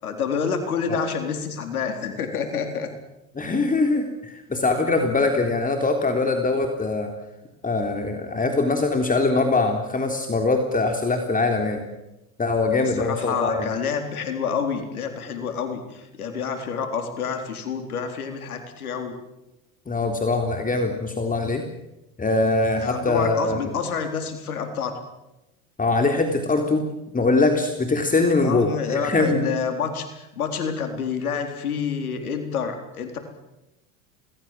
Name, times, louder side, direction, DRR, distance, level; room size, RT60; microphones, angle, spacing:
voice 1, 0.0-2.9 12.7-19.2 22.8-25.0 28.4-33.2, left 6 dB, 90° left, 6 dB, 4.2 m, -28 dB
voice 2, 3.4-7.1 7.6-11.8 12.4-13.7 19.9-21.6 22.2-23.6 25.8-26.9 27.1-29.5, left 3 dB, 20° left, 4 dB, 3.6 m, -22 dB
27.0 x 20.0 x 7.6 m, 0.94 s
hypercardioid pair, 85°, 43 cm